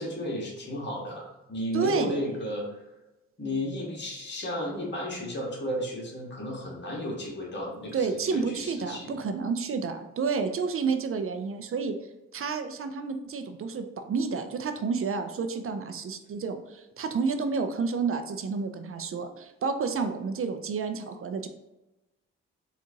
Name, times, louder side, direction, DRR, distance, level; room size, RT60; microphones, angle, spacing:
voice 1, 0.0-2.8 3.4-9.2, left 1 dB, 35° left, -2 dB, 1.3 m, -33 dB
voice 2, 1.7-2.3 7.9-11.9 12.3-21.5, right 5 dB, 40° right, 8 dB, 0.5 m, -30 dB
4.3 x 2.5 x 2.8 m, 1.0 s
hypercardioid pair, 40°, 33 cm